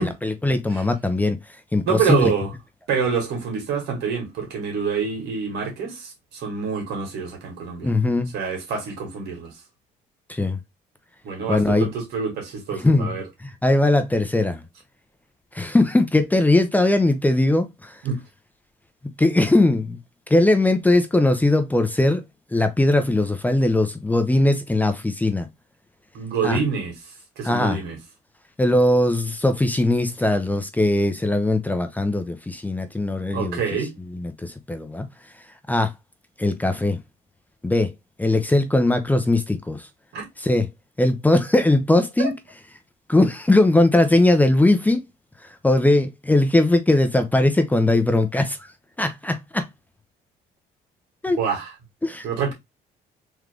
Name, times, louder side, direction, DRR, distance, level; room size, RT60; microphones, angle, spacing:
voice 1, 0.0-1.4 1.7-2.3 7.8-8.3 10.3-10.6 11.5-11.9 12.8-14.6 15.5-18.0 19.2-20.0 20.3-22.2 22.5-25.5 26.4-26.6 27.4-27.8 28.6-33.6 34.1-35.1 35.7-35.9 36.4-37.0 37.6-37.9 38.2-39.9 40.4-40.7 41.0-42.3 43.1-45.0 45.4-48.6 49.0-49.7 51.2-51.4 52.0-52.3, left 2 dB, 10° left, 0.6 m, -20 dB
voice 2, 1.9-2.5 2.9-7.9 8.3-9.5 11.2-13.2 18.0-18.2 26.1-26.9 27.4-28.0 33.3-33.9 40.1-40.2 42.2-42.3 51.4-51.7 52.2-52.5, right 6 dB, 80° right, 2.1 m, -26 dB
3.7 x 3.2 x 3.3 m
cardioid pair, 110°, 17 cm